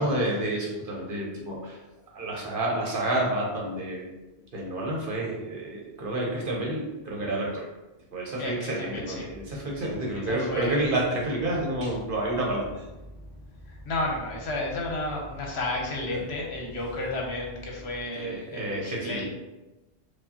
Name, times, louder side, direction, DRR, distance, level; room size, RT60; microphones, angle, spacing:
voice 1, 0.0-1.8 2.1-4.1 4.5-7.7 8.1-12.9 16.1-16.2 18.1-19.2, right 1 dB, 55° right, -2 dB, 0.9 m, -29 dB
voice 2, 8.4-9.3 10.2-10.8 13.7-19.2, left 2 dB, 70° left, -1 dB, 1.0 m, -32 dB
sound 1, 8.9-18.0, left 1 dB, 25° left, 0.9 m, -47 dB
4.6 x 2.3 x 2.8 m, 1.1 s
omnidirectional pair, 1.2 m